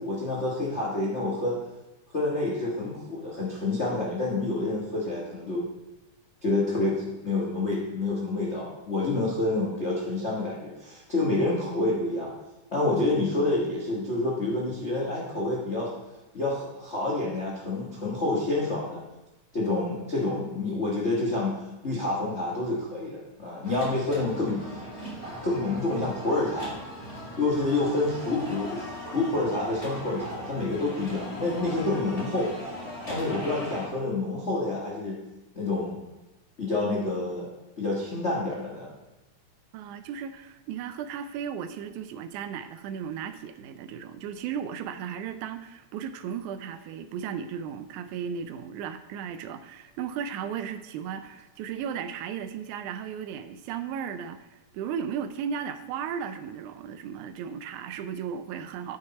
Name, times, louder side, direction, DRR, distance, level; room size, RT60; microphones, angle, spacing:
voice 1, 0.0-1.6 2.1-5.6 6.4-12.3 12.7-15.9 16.3-19.0 19.5-24.8 25.3-26.7 27.4-28.9 29.1-32.5 33.1-35.2 35.5-36.0 36.6-37.5 37.8-38.9, left 2 dB, 55° left, -3 dB, 0.7 m, -28 dB
sound 1, 23.6-33.9, equal, 15° left, 1.6 m, -39 dB
voice 2, 39.7-59.0, right 8 dB, 80° right, 11 dB, 1.9 m, -35 dB
9.5 x 6.4 x 4.2 m, 1.0 s
omnidirectional pair, 3.6 m